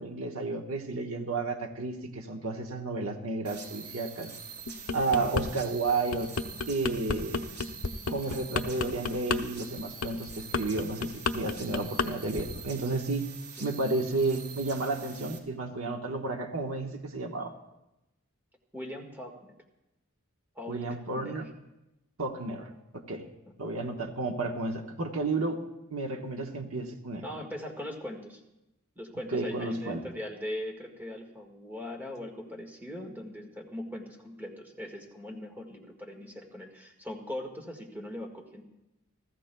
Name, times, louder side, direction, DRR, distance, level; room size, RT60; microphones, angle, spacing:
voice 1, 0.0-4.3 4.9-6.3 6.7-7.5 8.1-13.3 13.6-17.5 20.7-21.4 22.2-22.7 22.9-23.2 23.6-25.6 25.9-27.2 29.3-30.0, right 3 dB, 65° right, 2 dB, 1.2 m, -32 dB
sound 1, 3.4-15.4, right 5 dB, 85° right, 3.4 m, -45 dB
sound 2, 4.7-5.5 5.9-12.1 12.4-12.7, left 4 dB, 65° left, 0.7 m, -31 dB
voice 2, 5.1-5.5 13.6-13.7 18.7-19.5 20.5-21.4 23.5-23.8 27.2-28.4 28.9-38.6, left 1 dB, 10° right, 2 dB, 1.6 m, -40 dB
29.5 x 13.5 x 2.3 m, 0.93 s
head